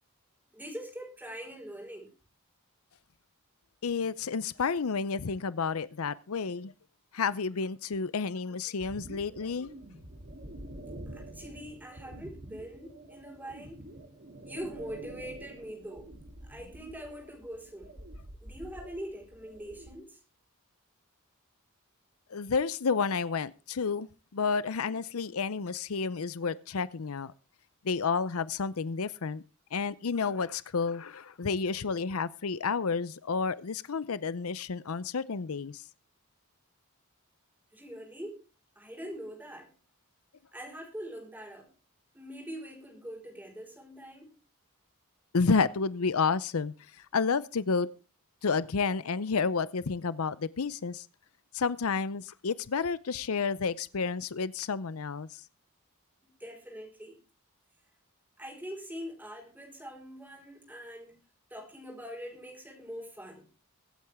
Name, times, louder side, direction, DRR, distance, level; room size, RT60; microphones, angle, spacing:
voice 1, 0.5-2.1 11.1-13.8 14.4-16.1 16.4-18.0 18.4-20.2 37.7-38.4 38.8-39.7 40.5-41.7 42.1-44.3 56.2-57.2 58.4-61.2 61.5-63.5, equal, 10° right, 5.1 m, -43 dB
voice 2, 3.8-6.7 7.1-9.7 22.3-27.3 27.8-29.4 29.7-35.8 45.3-47.9 48.4-51.1 51.5-55.4, left 5 dB, 70° left, 0.6 m, -30 dB
sound 1, 8.8-20.0, right 1 dB, 50° right, 3.2 m, -47 dB
24.0 x 8.8 x 3.6 m
head